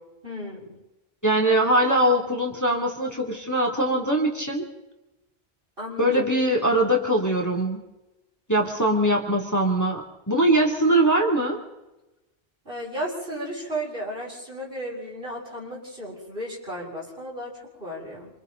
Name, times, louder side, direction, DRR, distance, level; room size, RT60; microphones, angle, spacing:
voice 1, 0.2-0.8 5.8-6.3 12.6-18.3, equal, 55° right, -4 dB, 7.8 m, -34 dB
voice 2, 1.2-4.7 6.0-7.9 8.5-11.6, right 1 dB, 15° left, -2 dB, 3.0 m, -22 dB
28.0 x 27.5 x 4.0 m, 1.0 s
omnidirectional pair, 1.1 m